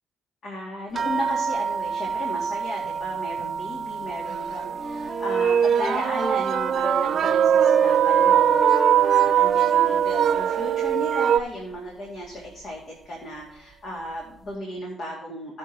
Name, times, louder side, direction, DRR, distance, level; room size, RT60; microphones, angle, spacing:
voice 1, 0.4-15.6, left 1 dB, 65° left, -3 dB, 2.4 m, -35 dB
sound 1, 0.9-9.8 10.1-11.0 11.7-11.8 12.2-12.4, right 5 dB, 35° right, 0.8 m, -33 dB
sound 2, 3.4-3.5 4.3-4.4 5.1-11.4, right 9 dB, 60° right, 0.4 m, -20 dB
Wind instrument woodwind instrument, 4.8-7.4 7.6-10.4, right 1 dB, ahead, 0.5 m, -31 dB
16.5 x 6.2 x 3.0 m, 0.81 s
cardioid pair, 90°, 0 cm